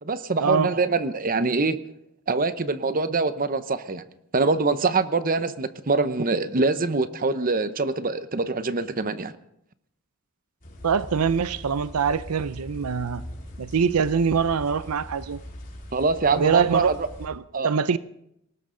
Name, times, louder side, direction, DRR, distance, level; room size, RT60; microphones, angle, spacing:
voice 1, 0.0-1.8 2.3-4.0 4.3-9.3 15.9-17.0 17.5-17.7, right 3 dB, 40° right, 0.8 m, -24 dB
sound 1, 10.6-17.3, equal, 40° left, 4.2 m, -41 dB
voice 2, 10.8-13.2 13.6-15.4 16.3-18.0, right 6 dB, 90° right, 0.6 m, -24 dB
20.0 x 18.0 x 3.9 m
head